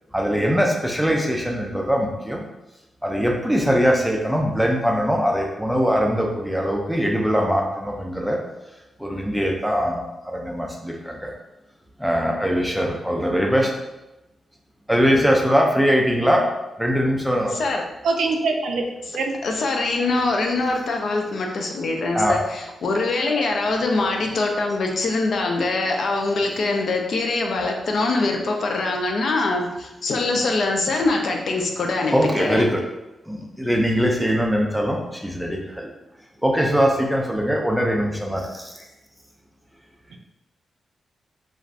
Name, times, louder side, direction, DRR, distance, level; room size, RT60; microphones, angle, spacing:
voice 1, 0.1-2.4 3.0-8.4 9.0-11.3 12.0-13.7 14.9-16.4 16.8-17.6 22.1-22.4 32.1-32.8 33.3-35.9 36.4-38.8, equal, ahead, 0 dB, 0.4 m, -21 dB
voice 2, 17.5-17.8 19.4-32.6, left 3 dB, 60° left, 2 dB, 0.4 m, -23 dB
voice 3, 18.0-18.8 19.1-19.3 40.1-40.2, right 3 dB, 80° right, 2 dB, 0.4 m, -23 dB
3.2 x 2.5 x 2.4 m, 0.97 s
wide cardioid pair, 130°, 0 cm